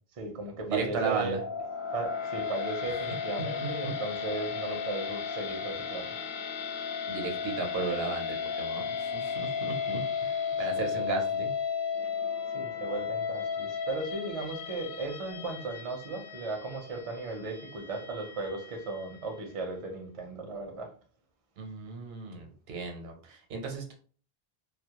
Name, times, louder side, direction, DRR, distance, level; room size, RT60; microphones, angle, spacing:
voice 1, 0.1-1.4 1.9-6.2 10.5-10.9 12.5-20.9, right 3 dB, 45° right, 0.5 m, -36 dB
voice 2, 0.7-1.4 3.4-3.5 3.8-3.9 7.1-11.5 21.6-23.9, right 5 dB, 80° right, 0.9 m, -35 dB
sound 1, 1.3-19.5, left 6 dB, 60° left, 0.7 m, -35 dB
2.2 x 2.0 x 2.8 m
omnidirectional pair, 1.0 m